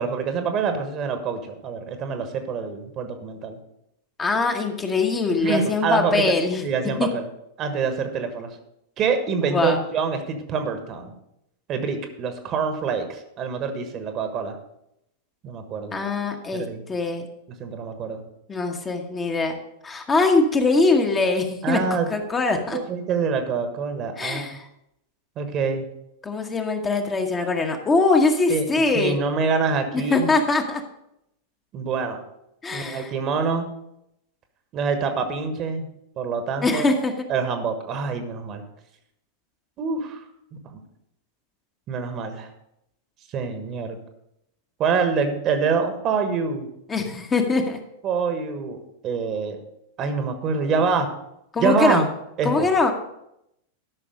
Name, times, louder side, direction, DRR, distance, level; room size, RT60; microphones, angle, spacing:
voice 1, 0.0-3.6 5.4-6.3 6.6-7.2 7.6-8.5 9.0-11.1 11.7-14.5 15.4-16.0 16.5-16.8 17.6-18.2 21.6-22.1 22.7-24.6 25.4-25.9 28.5-28.7 28.9-30.3 31.7-32.2 32.7-33.7 34.7-35.9 36.2-36.9 37.3-38.6 39.8-40.3 40.7-40.8 41.9-42.5 43.3-44.0 44.8-46.7 48.0-49.6 50.0-51.1 51.6-52.0 52.4-52.7, right 5 dB, 35° right, 7 dB, 1.3 m, -25 dB
voice 2, 4.2-6.6 7.0-7.1 9.4-9.8 15.9-17.3 18.5-19.6 19.8-21.8 22.1-22.8 24.2-24.7 26.2-29.2 29.9-30.8 32.6-33.1 36.6-37.1 46.9-47.8 51.5-52.1 52.4-52.9, left 3 dB, 20° left, 3 dB, 1.2 m, -22 dB
12.0 x 6.0 x 5.0 m, 0.81 s
figure-of-eight pair, 90°, 0 cm